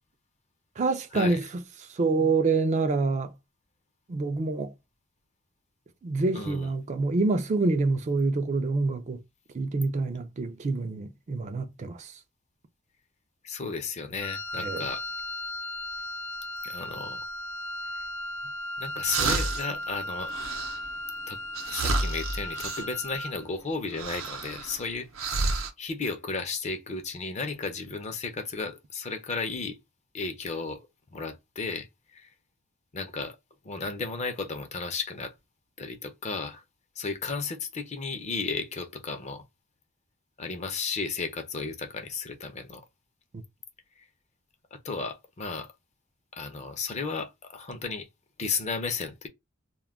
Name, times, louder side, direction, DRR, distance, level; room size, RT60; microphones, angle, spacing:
voice 1, 0.8-1.5 1.8-3.3 4.1-4.7 6.0-9.2 9.5-12.2 14.6-14.9 43.3-43.4, right 3 dB, 35° right, 0.3 m, -27 dB
voice 2, 6.3-6.7 13.4-15.0 16.6-17.3 18.8-20.3 21.3-21.4 21.7-29.8 30.1-30.9 31.1-32.3 32.9-33.4 33.6-35.3 35.8-36.6 37.0-39.4 40.4-42.8 44.7-45.7 46.3-48.1 48.4-49.3, left 4 dB, 35° left, 0.5 m, -34 dB
Wind instrument woodwind instrument, 14.2-23.4, left 1 dB, 90° left, 0.6 m, -36 dB
sound 1, 19.1-19.8 20.2-20.9 21.5-22.8 23.9-24.9 25.1-25.7, right 3 dB, 75° right, 0.6 m, -30 dB
2.2 x 2.1 x 3.3 m
head